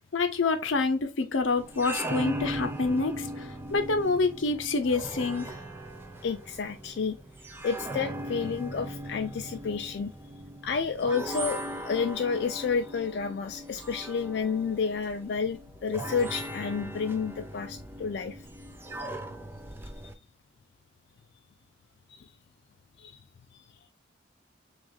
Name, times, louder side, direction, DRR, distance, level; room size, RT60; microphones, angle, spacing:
voice 1, 0.1-5.6, left 3 dB, 80° left, 0.7 m, -27 dB
sound 1, 1.6-20.1, right 1 dB, 10° right, 0.4 m, -39 dB
voice 2, 6.2-7.2 7.6-10.1 10.6-18.4 22.1-22.3 23.0-23.2, left 5 dB, 55° left, 0.3 m, -30 dB
6.1 x 2.4 x 2.3 m
head